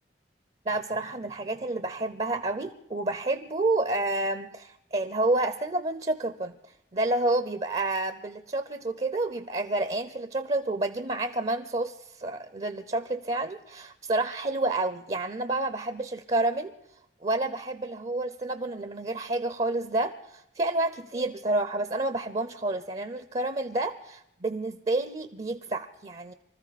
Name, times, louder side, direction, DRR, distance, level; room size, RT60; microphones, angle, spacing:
voice 1, 0.7-6.5 6.9-16.7 17.2-26.3, right 2 dB, 35° right, 11 dB, 0.5 m, -29 dB
25.0 x 14.0 x 4.1 m, 0.80 s
head